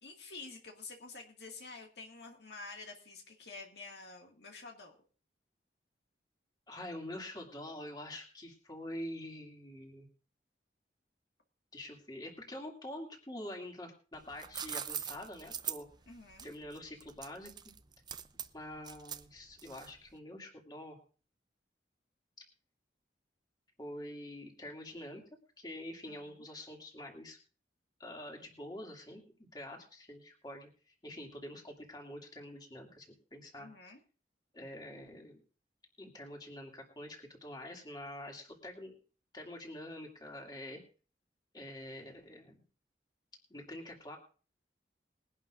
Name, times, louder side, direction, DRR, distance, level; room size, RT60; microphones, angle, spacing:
voice 1, 0.0-5.0 16.1-16.5 26.1-26.5 33.6-34.0, left 3 dB, 70° left, 1 dB, 2.0 m, -49 dB
voice 2, 6.7-10.1 11.7-15.9 16.4-17.5 18.5-21.0 23.8-25.2 25.6-27.4 28.0-29.2 29.5-33.7 34.5-35.4 36.0-39.0 39.3-40.8 41.5-42.6 43.5-44.2, left 1 dB, 25° left, 1 dB, 2.5 m, -46 dB
sound 1, 14.1-20.1, right 8 dB, 25° right, 0.5 m, -42 dB
21.5 x 11.0 x 2.5 m, 0.38 s
head